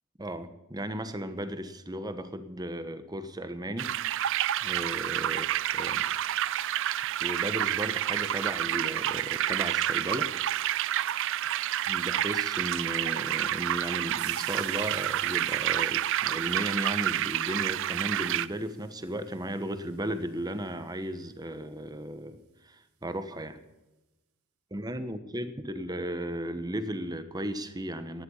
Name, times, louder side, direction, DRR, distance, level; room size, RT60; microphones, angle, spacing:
voice 1, 0.2-3.9 4.6-5.5 5.7-6.1 7.2-10.3 11.9-23.6 24.7-28.2, right 1 dB, 20° right, 11 dB, 1.2 m, -35 dB
sound 1, 3.8-18.5, right 12 dB, 60° right, 0.4 m, -29 dB
sound 2, 14.1-20.9, right 10 dB, 85° right, 1.8 m, -52 dB
16.5 x 11.5 x 5.6 m, 1.0 s
head